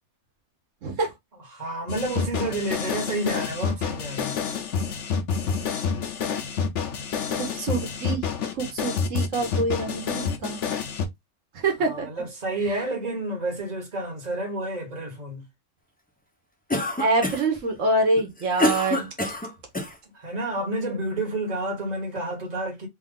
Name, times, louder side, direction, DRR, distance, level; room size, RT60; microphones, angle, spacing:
voice 1, 1.5-4.4 9.9-10.2 11.8-15.4 20.1-22.9, right 1 dB, 35° right, 1.4 m, -30 dB
sound 1, 1.9-11.1, left 6 dB, 70° left, 1.0 m, -28 dB
voice 2, 7.4-10.6 11.5-12.1 12.7-12.8 17.0-19.1, right 2 dB, 80° right, 1.5 m, -26 dB
Cough, 16.7-17.6 18.2-20.0, left 1 dB, 10° left, 0.5 m, -26 dB
3.5 x 2.4 x 3.7 m
omnidirectional pair, 1.3 m